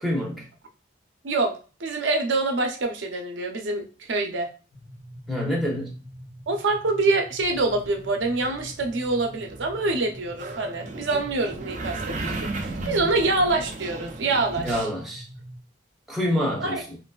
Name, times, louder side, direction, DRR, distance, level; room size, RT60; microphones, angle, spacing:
voice 1, 0.0-0.5 5.3-6.0 14.6-15.3 16.1-17.0, equal, ahead, 0.7 m, -27 dB
voice 2, 1.8-4.5 6.5-14.9 16.6-16.8, right 3 dB, 85° right, 0.6 m, -25 dB
sound 1, 4.7-15.6, equal, 70° left, 0.8 m, -45 dB
sound 2, 7.4-14.8, right 2 dB, 40° right, 0.4 m, -35 dB
3.1 x 2.5 x 2.3 m
head